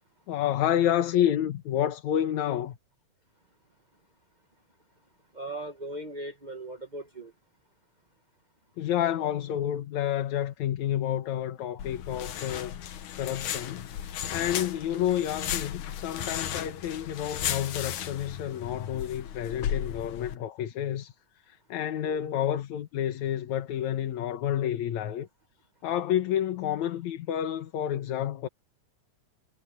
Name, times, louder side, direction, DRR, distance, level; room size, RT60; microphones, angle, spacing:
voice 1, 0.3-2.8 8.8-12.8 13.2-13.9 14.3-21.1 21.5-25.3 25.8-28.5, left 11 dB, 75° left, 2.5 m, -29 dB
voice 2, 5.3-7.3 14.8-15.0 22.0-22.2, right 2 dB, 30° right, 0.8 m, -39 dB
sound 1, 11.8-20.3, left 10 dB, 90° left, 2.8 m, -35 dB
omnidirectional pair, 3.4 m